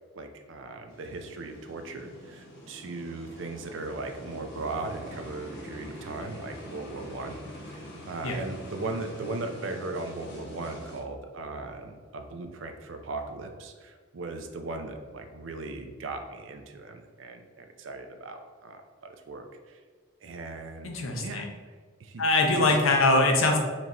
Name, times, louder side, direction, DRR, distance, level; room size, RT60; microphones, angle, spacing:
voice 1, 0.1-7.4 7.7-18.8 19.3-19.8 20.2-21.5 22.0-22.8, right 3 dB, 70° right, 6 dB, 0.5 m, -38 dB
sound 1, 0.9-11.0, equal, 55° left, 1.0 m, -45 dB
voice 2, 20.8-21.5 22.2-23.6, left 2 dB, 85° left, 2 dB, 0.6 m, -22 dB
4.4 x 2.6 x 3.0 m, 1.5 s
head